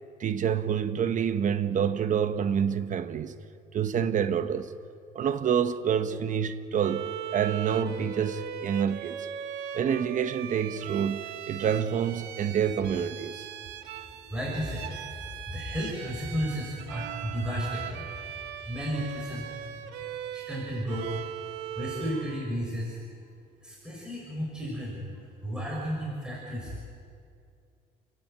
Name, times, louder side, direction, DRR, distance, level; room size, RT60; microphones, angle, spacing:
voice 1, 0.2-3.3 3.7-4.7 5.1-9.3 9.7-13.4, right 8 dB, 50° right, 1.2 m, -27 dB
Bowed string instrument, 6.8-22.6, right 10 dB, 90° right, 1.1 m, -39 dB
voice 2, 13.9-18.4 18.7-19.5 20.3-21.1 21.7-23.0 23.6-26.8, equal, 5° right, 5.9 m, -34 dB
29.5 x 12.5 x 8.9 m
cardioid pair, 110°, 17 cm